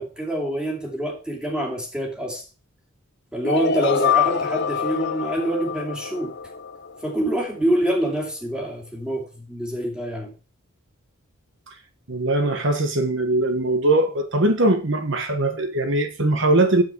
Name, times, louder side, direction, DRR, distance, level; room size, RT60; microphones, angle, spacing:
voice 1, 0.0-2.4 3.3-6.3 7.0-10.3, right 1 dB, 5° right, 2.8 m, -26 dB
sound 1, 3.4-7.4, left 7 dB, 50° left, 0.7 m, -25 dB
voice 2, 12.1-16.8, right 2 dB, 60° right, 1.4 m, -21 dB
9.2 x 7.7 x 4.6 m
head